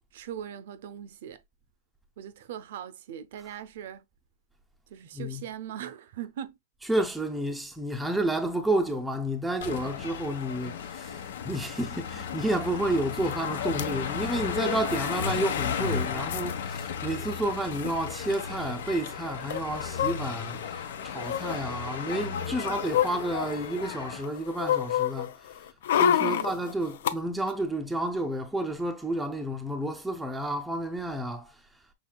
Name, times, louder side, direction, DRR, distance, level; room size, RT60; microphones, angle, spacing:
voice 1, 0.1-1.4 2.2-4.0 4.9-6.6 26.2-26.5, right 10 dB, 60° right, 0.5 m, -40 dB
voice 2, 5.1-5.4 6.9-25.3 25.9-31.6, right 1 dB, ahead, 0.5 m, -30 dB
sound 1, 9.6-24.2, left 7 dB, 90° left, 1.1 m, -34 dB
sound 2, 13.3-13.4 13.6-13.9 14.9-15.3 15.6-15.7 15.9-16.5 17.4-17.5 17.7-17.9 19.5-20.6 21.2-21.6 22.2-23.8 24.2-27.1 27.5-27.6, left 11 dB, 65° left, 0.6 m, -29 dB
6.0 x 3.6 x 2.2 m
supercardioid pair, 180°, 0 cm